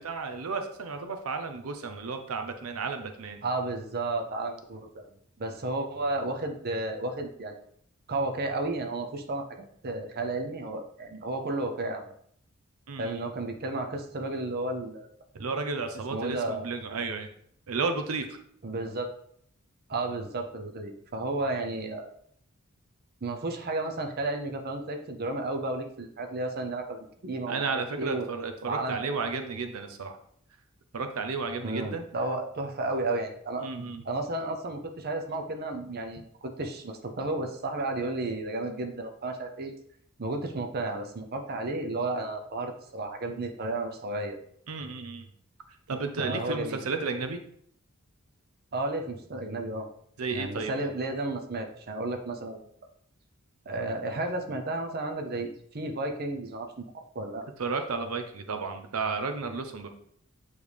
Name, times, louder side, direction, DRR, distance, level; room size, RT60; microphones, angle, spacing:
voice 1, 0.0-3.4 12.9-13.2 15.3-17.3 17.7-18.3 27.5-30.2 30.9-32.1 33.6-34.0 44.7-45.3 45.9-47.4 50.2-50.7 57.6-59.9, right 4 dB, 90° right, 6 dB, 0.6 m, -33 dB
voice 2, 3.4-7.6 8.1-12.1 13.0-15.1 16.1-16.7 18.6-19.1 19.9-22.1 23.2-28.3 28.6-29.2 31.6-33.7 34.0-39.7 40.2-44.4 46.2-46.8 48.7-49.9 50.3-52.7 53.7-57.5, right 2 dB, 45° right, 4 dB, 0.7 m, -33 dB
8.5 x 3.2 x 3.5 m, 0.65 s
head